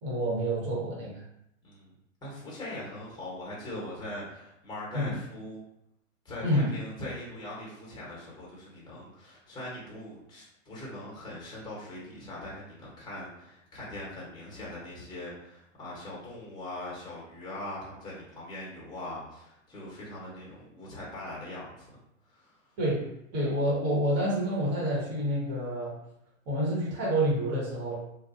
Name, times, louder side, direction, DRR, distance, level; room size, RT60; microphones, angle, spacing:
voice 1, 0.0-1.2 4.9-5.2 6.4-6.7 22.8-23.0 23.3-25.9 26.5-28.0, right 1 dB, 40° right, -5 dB, 1.4 m, -28 dB
voice 2, 2.2-5.6 6.2-21.9 22.3-22.6, left 1 dB, 10° left, -5 dB, 1.2 m, -41 dB
2.5 x 2.4 x 2.6 m, 0.81 s
hypercardioid pair, 120°, 39 cm